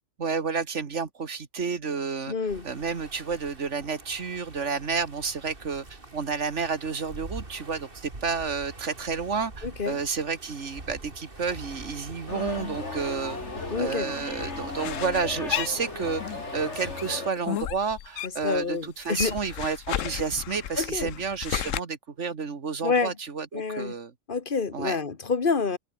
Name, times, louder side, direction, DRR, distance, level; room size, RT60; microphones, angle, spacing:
voice 1, 0.2-2.3 2.6-13.4 13.8-16.2 16.5-24.1 24.7-25.0, right 5 dB, 65° right, 2.1 m, -30 dB
voice 2, 2.3-2.6 9.6-10.0 13.7-14.1 18.4-19.4 20.8-21.1 22.8-23.1 23.5-23.9 24.3-25.8, left 4 dB, 45° left, 1.6 m, -27 dB
sound 1, 2.5-17.2, right 2 dB, 45° right, 3.6 m, -45 dB
sound 2, 12.3-17.3, left 3 dB, 60° left, 3.3 m, -36 dB
sound 3, 14.4-16.4 16.7-18.6 18.8-21.8, left 11 dB, 85° left, 1.1 m, -33 dB
omnidirectional pair, 1.3 m